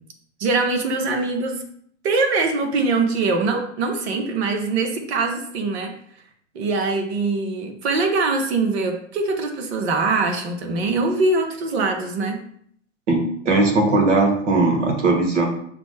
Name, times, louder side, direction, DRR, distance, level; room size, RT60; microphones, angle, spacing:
voice 1, 0.4-1.6 2.0-5.9 6.5-12.4, right 3 dB, 60° right, 4 dB, 1.0 m, -22 dB
voice 2, 13.1-15.4, right 3 dB, 75° right, 1 dB, 1.4 m, -19 dB
5.9 x 2.1 x 3.3 m, 0.64 s
hypercardioid pair, 105°, 37 cm